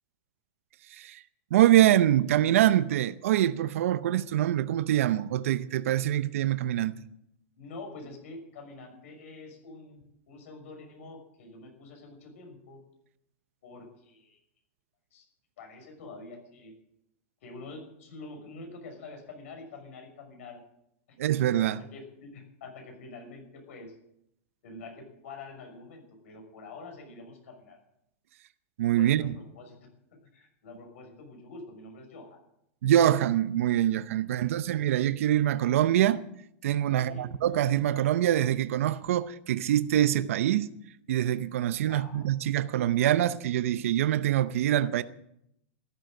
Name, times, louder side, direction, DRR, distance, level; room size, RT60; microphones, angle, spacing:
voice 1, 0.9-1.2 1.5-6.9 21.2-21.8 28.8-29.3 32.8-36.2 36.6-40.7 41.1-45.0, right 12 dB, 75° right, 0.7 m, -24 dB
voice 2, 7.5-12.8 13.6-14.4 15.1-15.3 15.6-16.7 17.4-20.6 21.6-24.0 24.6-27.8 28.9-29.8 30.3-32.4 34.3-34.6 36.9-37.3 41.9-42.3, left 3 dB, 70° left, 6.3 m, -46 dB
14.0 x 11.5 x 7.8 m
supercardioid pair, 150°, 7 cm